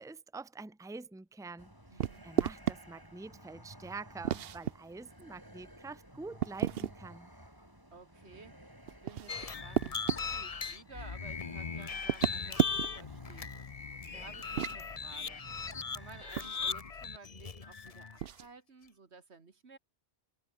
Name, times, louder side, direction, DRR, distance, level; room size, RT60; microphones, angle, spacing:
voice 1, 0.0-7.3, right 3 dB, 5° right, 0.8 m, -46 dB
sound 1, 1.6-16.2, equal, 20° right, 8.2 m, -55 dB
voice 2, 1.9-2.2 7.9-8.6 9.0-13.5 14.0-15.4 15.9-19.8, right 4 dB, 90° right, 2.3 m, -54 dB
sound 2, 2.0-2.8 4.2-4.7 6.4-7.0 8.9-10.2 12.0-13.1 14.4-14.8 16.4-16.6 18.2-18.5, right 10 dB, 65° right, 0.9 m, -32 dB
sound 3, 9.3-18.2, left 5 dB, 35° left, 0.9 m, -39 dB
omnidirectional pair, 1.1 m